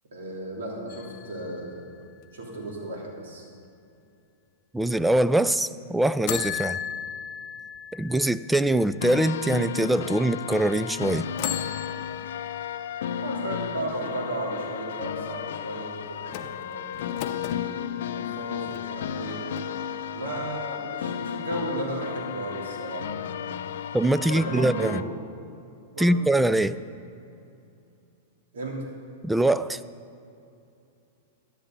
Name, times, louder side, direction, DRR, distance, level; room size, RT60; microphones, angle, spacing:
voice 1, 0.1-1.8 2.3-3.5 13.1-19.4 20.1-23.6 24.3-25.1 25.9-26.2 28.5-28.8, right 1 dB, 85° right, -2 dB, 3.2 m, -35 dB
sound 1, 0.9-2.7 6.3-9.4 9.9-10.0 11.3-13.1 16.3-17.7 18.3-19.3 19.6-19.7, left 9 dB, 45° left, 0.8 m, -36 dB
voice 2, 4.7-6.8 7.9-11.2 23.9-25.0 26.0-26.8 29.2-29.8, right 1 dB, 5° right, 15 dB, 0.3 m, -23 dB
sound 2, 9.0-25.0, left 9 dB, 75° left, 0.5 m, -34 dB
14.5 x 10.5 x 3.9 m, 2.7 s
hypercardioid pair, 130°, 0 cm